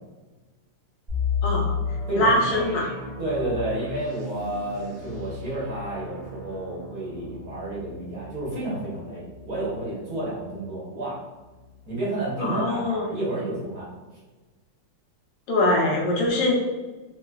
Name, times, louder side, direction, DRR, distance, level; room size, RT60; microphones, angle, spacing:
sound 1, 1.1-10.8 11.1-11.2 11.8-12.0, left 5 dB, 35° right, 0.7 m, -34 dB
voice 1, 1.4-1.7 2.2-2.9 12.4-13.0 15.5-16.5, left 1 dB, 75° left, -2 dB, 1.4 m, -22 dB
voice 2, 2.1-2.7 3.2-11.2 11.9-13.9, right 2 dB, 60° right, -7 dB, 1.5 m, -30 dB
3.7 x 2.4 x 2.2 m, 1.3 s
omnidirectional pair, 2.0 m